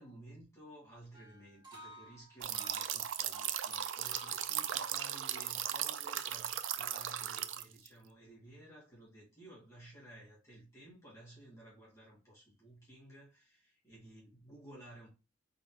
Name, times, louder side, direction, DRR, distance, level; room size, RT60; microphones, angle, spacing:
voice 1, 0.0-15.1, right 1 dB, 15° left, 2.1 m, -55 dB
Wind Up Toy, 1.1-4.9, right 1 dB, 20° right, 2.5 m, -54 dB
sound 1, 2.4-7.9, right 10 dB, 75° right, 0.4 m, -37 dB
4.0 x 3.9 x 2.9 m
head